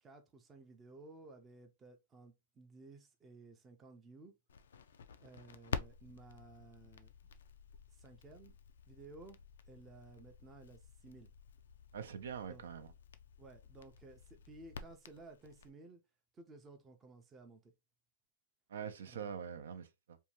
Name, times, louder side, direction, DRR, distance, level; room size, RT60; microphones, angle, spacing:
voice 1, 0.0-4.3 5.2-7.1 7.9-8.5 8.9-9.4 9.7-11.3 12.5-12.6 13.4-16.0 16.3-17.7 19.1-19.4, right 3 dB, 15° right, 0.4 m, -56 dB
Crackle, 4.5-15.7, left 6 dB, 85° left, 0.3 m, -49 dB
voice 2, 11.9-12.9 18.7-20.2, right 7 dB, 80° right, 0.5 m, -44 dB
2.6 x 2.2 x 2.9 m
hypercardioid pair, 155°, 0 cm